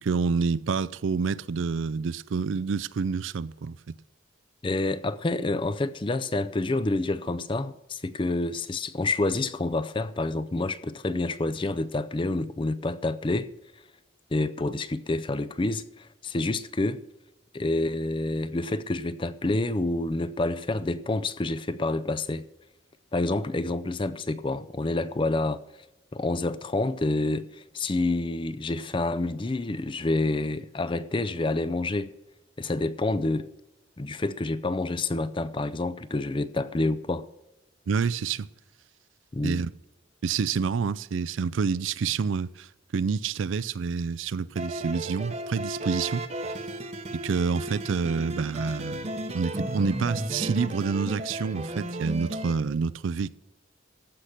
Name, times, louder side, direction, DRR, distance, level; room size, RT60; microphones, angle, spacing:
voice 1, 0.0-4.0 37.9-38.5 39.4-39.7 40.2-46.3 47.1-53.4, right 5 dB, 75° right, 0.4 m, -28 dB
voice 2, 4.6-13.5 14.3-17.0 17.5-22.4 23.1-25.6 26.1-32.1 32.6-33.5 34.0-37.3 39.3-39.6, left 2 dB, 25° left, 0.4 m, -28 dB
sound 1, 44.6-52.6, right 1 dB, 35° right, 0.8 m, -34 dB
14.5 x 5.8 x 6.6 m
head